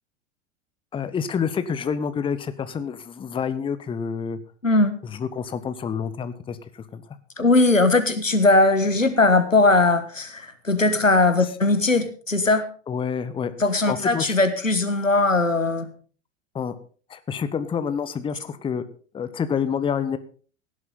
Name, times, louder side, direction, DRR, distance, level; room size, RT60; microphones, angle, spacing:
voice 1, 0.9-4.4 5.0-7.0 12.9-13.5 13.9-14.4 16.5-16.7 17.1-18.9 19.1-20.2, left 7 dB, 15° left, 13 dB, 0.8 m, -28 dB
voice 2, 4.6-4.9 7.4-12.7 13.6-15.9, left 2 dB, 90° left, 10 dB, 1.4 m, -19 dB
17.0 x 11.0 x 3.8 m, 0.40 s
figure-of-eight pair, 85°, 38 cm